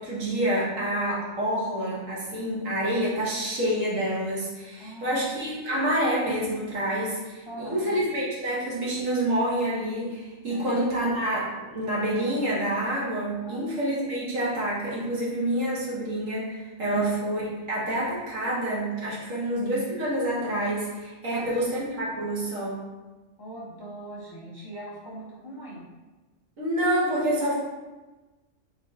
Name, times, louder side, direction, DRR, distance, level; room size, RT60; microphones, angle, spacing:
voice 1, 0.0-17.4 17.7-22.8 26.6-27.6, right 1 dB, 80° right, -6 dB, 1.6 m, -27 dB
voice 2, 4.8-5.3 7.5-8.0 10.5-10.7 13.5-13.6 16.9-17.0 19.3-19.4 21.3-21.5 23.4-25.8, right 1 dB, 20° left, -6 dB, 0.7 m, -40 dB
3.8 x 3.2 x 3.5 m, 1.2 s
omnidirectional pair, 1.3 m